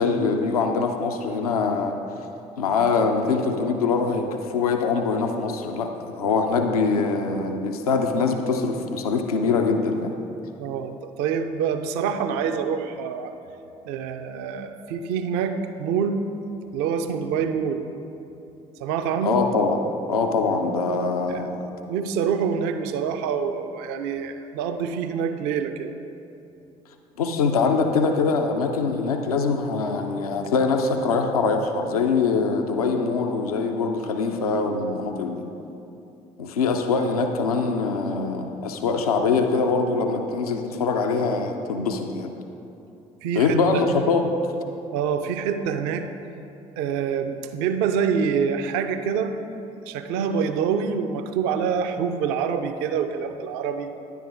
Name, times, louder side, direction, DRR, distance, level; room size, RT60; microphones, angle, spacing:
voice 1, 0.0-2.0 2.6-10.1 19.2-19.8 20.1-21.7 27.2-35.5 36.4-42.3 43.4-44.5, left 4 dB, 75° left, 4 dB, 0.5 m, -23 dB
voice 2, 10.6-13.3 13.8-16.2 16.7-17.8 18.8-19.4 21.3-21.4 21.9-25.9 43.2-43.8 44.9-46.1 46.8-49.4 49.8-53.9, right 7 dB, 60° right, 8 dB, 0.5 m, -26 dB
10.5 x 9.1 x 2.5 m, 2.8 s
figure-of-eight pair, 50°, 19 cm